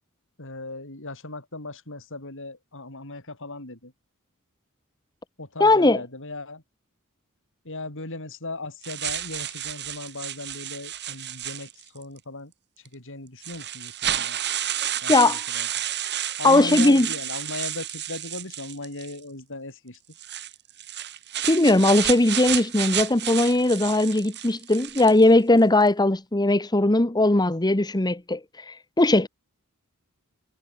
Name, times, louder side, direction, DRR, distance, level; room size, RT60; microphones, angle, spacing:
voice 1, 0.4-3.9 5.4-6.6 7.6-12.5 12.8-14.4 15.0-15.7 16.4-20.0, left 2 dB, 60° left, 7.1 m, -37 dB
voice 2, 5.6-6.0 15.1-15.4 16.4-17.1 21.5-29.3, left 2 dB, 20° left, 1.2 m, -19 dB
sound 1, 8.8-12.0 12.9-13.0 13.4-19.2 20.1-25.3, right 11 dB, 50° right, 4.7 m, -31 dB
head